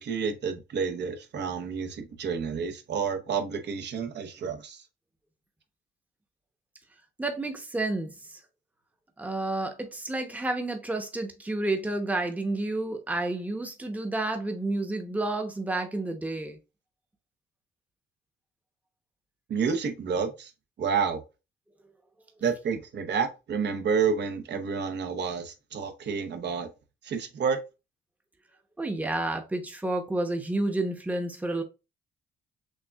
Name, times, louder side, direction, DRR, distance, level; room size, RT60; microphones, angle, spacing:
voice 1, 0.0-4.8 19.5-20.5 20.8-21.2 22.4-26.7 27.0-27.6, right 6 dB, 60° right, 0.9 m, -29 dB
voice 2, 7.2-8.4 9.2-16.6 28.8-31.6, right 2 dB, 10° right, 0.9 m, -30 dB
6.4 x 2.3 x 2.3 m
cardioid pair, 90°, 20 cm